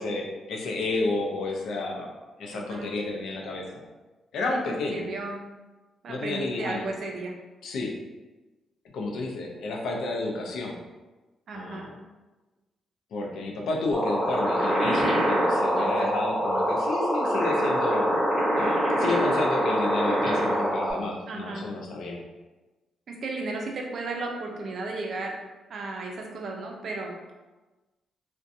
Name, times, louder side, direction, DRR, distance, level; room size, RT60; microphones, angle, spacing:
voice 1, 0.0-2.1 2.4-3.8 4.3-5.0 6.1-6.9 7.6-7.9 8.9-10.8 11.5-11.9 13.1-18.2 18.6-22.2, left 2 dB, 75° left, 0 dB, 0.5 m, -31 dB
voice 2, 2.5-2.9 4.9-5.4 6.0-7.3 11.5-11.9 15.7-16.2 21.3-21.7 23.1-25.3 25.7-27.3, right 3 dB, 60° right, 1 dB, 0.5 m, -34 dB
sound 1, 13.9-20.9, equal, 15° left, 0.9 m, -24 dB
2.5 x 2.2 x 2.6 m, 1.2 s
cardioid pair, 85°, 0 cm